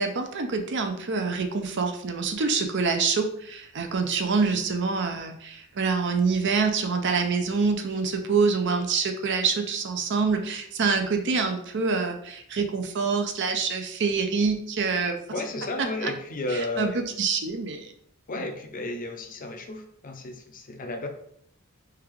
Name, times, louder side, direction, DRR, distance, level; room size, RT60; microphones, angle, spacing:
voice 1, 0.0-15.2 15.8-16.1 16.5-17.9 18.4-18.5, right 4 dB, 55° right, 6 dB, 0.5 m, -26 dB
voice 2, 15.3-17.0 18.3-21.1, left 2 dB, 40° left, 5 dB, 0.5 m, -33 dB
3.4 x 3.3 x 3.6 m, 0.68 s
head